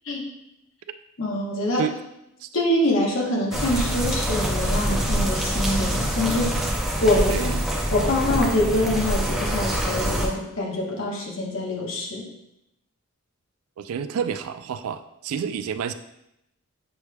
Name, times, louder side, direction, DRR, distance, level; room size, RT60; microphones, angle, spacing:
voice 1, 1.2-1.9 2.5-6.5 7.0-7.5 7.9-12.2, left 1 dB, 65° left, -2 dB, 1.0 m, -25 dB
sound 1, 3.5-10.3, equal, ahead, 0.6 m, -25 dB
voice 2, 13.8-15.9, right 7 dB, 80° right, 10 dB, 0.3 m, -29 dB
6.8 x 3.2 x 2.3 m, 0.83 s
head